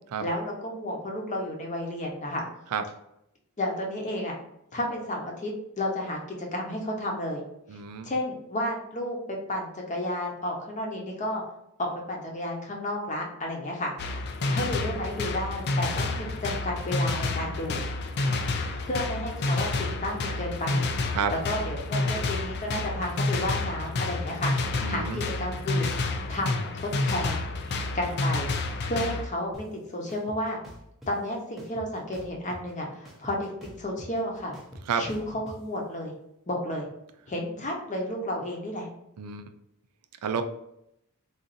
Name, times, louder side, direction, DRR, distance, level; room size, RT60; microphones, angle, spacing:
voice 1, 0.2-2.4 3.6-4.4 4.7-7.4 8.0-11.4 11.8-13.9 14.4-17.8 18.8-25.9 26.3-27.4 27.9-28.5 28.8-30.6 31.1-34.5 35.0-36.1 36.5-36.9 37.3-38.9, left 1 dB, 35° left, 0 dB, 0.8 m, -32 dB
voice 2, 7.7-8.1 18.2-18.4 21.1-21.3 24.8-25.2 34.9-35.1 39.2-39.4 40.2-40.4, right 6 dB, 80° right, 8 dB, 0.4 m, -30 dB
sound 1, 14.0-29.3, left 2 dB, 50° left, 0.4 m, -29 dB
sound 2, 29.5-29.6 30.1-31.1 31.6-32.7 33.0-35.6, equal, ahead, 0.7 m, -45 dB
3.9 x 2.5 x 2.5 m, 0.80 s
head